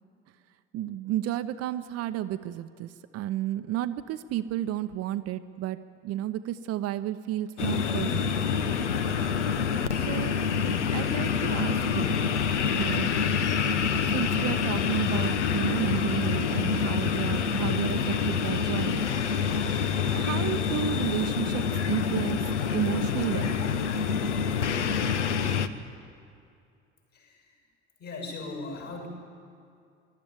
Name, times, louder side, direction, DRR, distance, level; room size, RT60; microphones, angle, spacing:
voice 1, 0.7-8.3 9.9-10.4 10.9-12.2 12.6-13.1 14.1-19.0 20.1-22.4 22.7-23.8, right 13 dB, 45° right, 10 dB, 0.7 m, -32 dB
sound 1, 7.6-25.7, left 6 dB, 75° left, 0.8 m, -27 dB
voice 2, 27.1-27.4 28.0-29.1, left 3 dB, 50° left, 1 dB, 6.5 m, -38 dB
21.5 x 12.5 x 9.9 m, 2.4 s
figure-of-eight pair, 60°, 35 cm